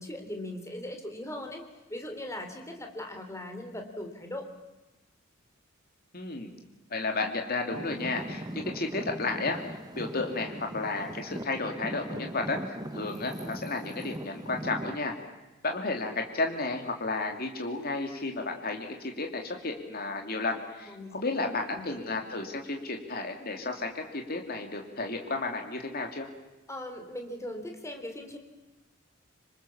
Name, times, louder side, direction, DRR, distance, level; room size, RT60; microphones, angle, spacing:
voice 1, 0.0-1.6 1.9-4.5 20.9-21.2 21.7-22.0 26.7-28.4, left 1 dB, 15° left, 4 dB, 3.5 m, -39 dB
voice 2, 6.1-6.5 6.9-9.6 9.9-15.1 15.6-26.3, left 3 dB, 45° left, 3 dB, 2.8 m, -32 dB
Traffic noise roadway noise / Engine, 7.7-15.0, right 1 dB, 20° right, 1.2 m, -39 dB
26.0 x 26.0 x 7.2 m, 1.1 s
head